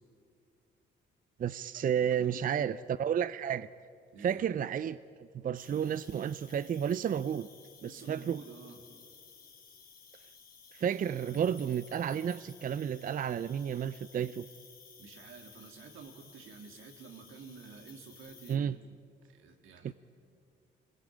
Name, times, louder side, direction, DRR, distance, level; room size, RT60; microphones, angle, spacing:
voice 1, 1.4-3.7 4.2-7.5 7.8-8.4 10.7-14.5 18.5-18.8 19.8-19.9, right 8 dB, 45° right, 16 dB, 0.5 m, -32 dB
voice 2, 2.0-2.7 4.1-4.5 7.8-8.9 15.0-19.9, right 5 dB, 85° right, 4 dB, 2.8 m, -51 dB
Cricket, 5.5-18.6, left 6 dB, 50° left, 3.4 m, -56 dB
25.5 x 20.5 x 8.9 m, 2.3 s
cardioid pair, 90°, 20 cm